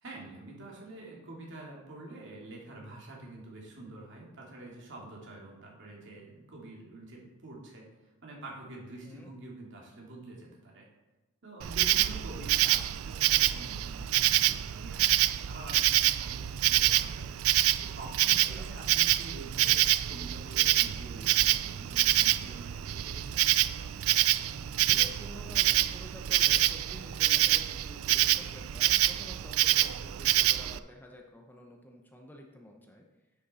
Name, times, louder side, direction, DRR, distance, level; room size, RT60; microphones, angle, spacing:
voice 1, 0.0-7.9 8.2-10.9 11.4-17.3 17.8-23.5, right 2 dB, 60° right, -2 dB, 2.4 m, -47 dB
Insect, 11.6-30.8, right 14 dB, 90° right, 0.4 m, -26 dB
voice 2, 18.3-18.7 24.7-33.0, left 1 dB, 10° left, 1 dB, 0.8 m, -50 dB
9.8 x 6.5 x 4.2 m, 1.1 s
head